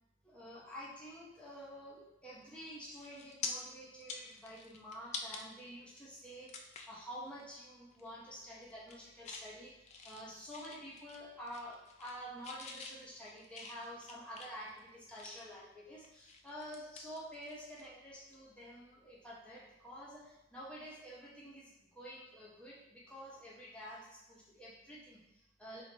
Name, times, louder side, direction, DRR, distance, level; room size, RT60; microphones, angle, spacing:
voice 1, 0.2-25.8, equal, 5° left, -7 dB, 0.7 m, -49 dB
sound 1, 2.4-2.6 3.0-3.5 3.9-5.4 5.9-6.0 6.5-7.0 7.4-7.6 7.9-8.3 8.7-9.5 9.9-11.2 11.5-12.2 12.4-15.6 16.0-17.9 18.1-18.3 20.2-20.4, left 5 dB, 35° left, 0.3 m, -47 dB
3.0 x 2.8 x 4.1 m, 0.87 s
head